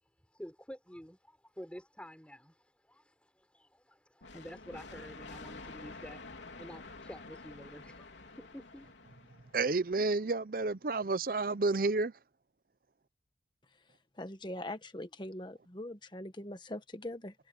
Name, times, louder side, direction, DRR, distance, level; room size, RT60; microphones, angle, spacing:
voice 1, 0.3-8.9, equal, 5° left, 4.3 m, -50 dB
sound 1, 4.2-9.8, left 3 dB, 85° left, 3.6 m, -49 dB
voice 2, 9.5-12.1, right 3 dB, 50° right, 0.6 m, -30 dB
voice 3, 14.2-17.3, left 1 dB, 25° left, 1.3 m, -42 dB
head